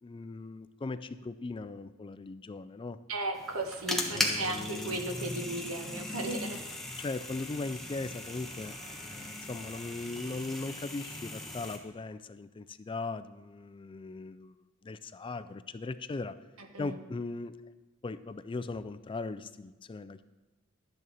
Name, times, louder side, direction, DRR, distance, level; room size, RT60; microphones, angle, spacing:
voice 1, 0.0-3.0 4.1-5.0 7.0-14.6 14.8-16.3 16.8-17.6 18.0-20.2, left 3 dB, 25° left, 13 dB, 0.3 m, -39 dB
voice 2, 3.1-6.6 16.7-17.0, right 2 dB, 85° right, 5 dB, 1.3 m, -35 dB
sound 1, 3.3-11.8, left 1 dB, ahead, 1.2 m, -38 dB
12.0 x 9.1 x 4.1 m, 1.1 s
head